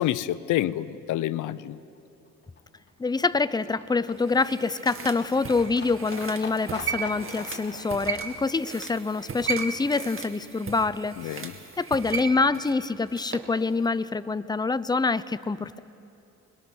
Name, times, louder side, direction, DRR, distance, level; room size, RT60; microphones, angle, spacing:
voice 1, 0.0-1.8 11.2-11.5, left 13 dB, 80° left, 16 dB, 0.7 m, -28 dB
Livestock farm animals working animals, 1.9-10.2 10.4-10.5 10.7-10.8 11.0-11.1 11.4-11.5 11.7-11.8 12.0-12.1 12.3-12.4 12.6-12.7, left 3 dB, 35° left, 3.8 m, -45 dB
voice 2, 3.0-11.5 11.8-15.8, left 4 dB, 15° left, 14 dB, 0.6 m, -26 dB
sound 1, 4.1-13.5 13.8-13.9, right 6 dB, 45° right, 2.1 m, -36 dB
27.0 x 21.0 x 6.3 m, 2.7 s
cardioid pair, 90°, 30 cm